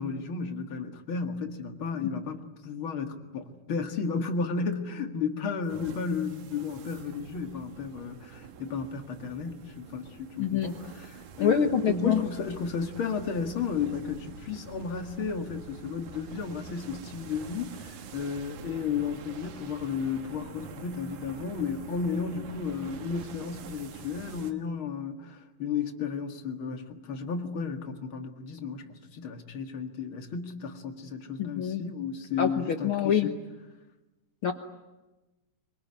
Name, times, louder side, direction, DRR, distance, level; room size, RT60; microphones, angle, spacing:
voice 1, 0.0-33.4, left 5 dB, 45° left, 6 dB, 2.4 m, -33 dB
sound 1, 5.7-24.5, right 6 dB, 65° right, 2.7 m, -46 dB
voice 2, 10.4-10.7 11.4-12.2 31.4-31.8 32.4-33.3 34.4-34.5, left 8 dB, 65° left, 7 dB, 1.4 m, -26 dB
25.0 x 23.0 x 9.7 m, 1.1 s
omnidirectional pair, 3.8 m